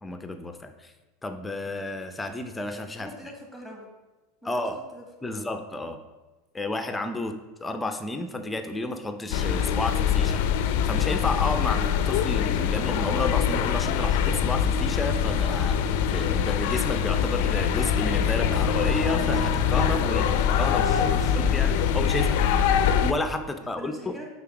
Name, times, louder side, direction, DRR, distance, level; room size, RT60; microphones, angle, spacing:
voice 1, 0.0-0.9 1.2-3.1 4.4-4.8 5.2-6.0 6.5-20.8 21.3-22.4 23.0-24.2, left 2 dB, 10° left, 8 dB, 0.5 m, -31 dB
voice 2, 3.0-3.8 4.4-5.5 20.7-21.4 21.7-22.1 23.7-24.3, right 1 dB, 10° right, -1 dB, 1.6 m, -44 dB
sound 1, 9.3-23.1, left 8 dB, 65° left, 0.4 m, -24 dB
sound 2, 17.6-21.6, right 1 dB, 45° right, 0.6 m, -36 dB
5.6 x 3.9 x 4.8 m, 1.1 s
supercardioid pair, 125°, 0 cm